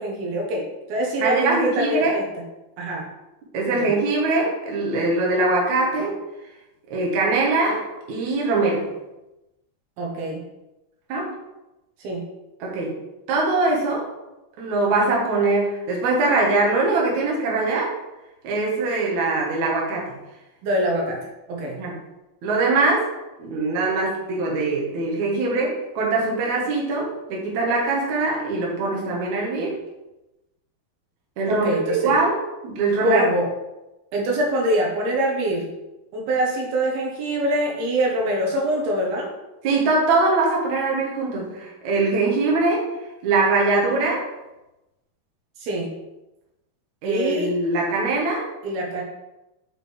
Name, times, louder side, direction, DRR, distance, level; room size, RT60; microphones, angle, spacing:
voice 1, 0.0-2.2 2.8-3.1 3.8-3.9 10.0-10.4 12.0-12.2 20.6-21.2 21.5-21.8 31.5-32.2 33.0-33.5 34.1-35.7 36.1-39.3 45.6-45.9 47.0-47.5 48.6-49.0, right 1 dB, 80° right, -1 dB, 3.0 m, -24 dB
voice 2, 1.2-2.2 3.5-6.2 6.9-8.9 11.1-11.3 12.6-13.0 13.3-14.1 14.6-17.9 18.4-20.2 21.8-21.9 22.4-23.1 23.4-29.7 31.4-32.4 32.6-33.2 39.6-42.9 43.2-44.3 47.0-48.5, right 3 dB, 60° right, -3 dB, 2.3 m, -22 dB
6.8 x 4.9 x 3.3 m, 0.98 s
omnidirectional pair, 4.4 m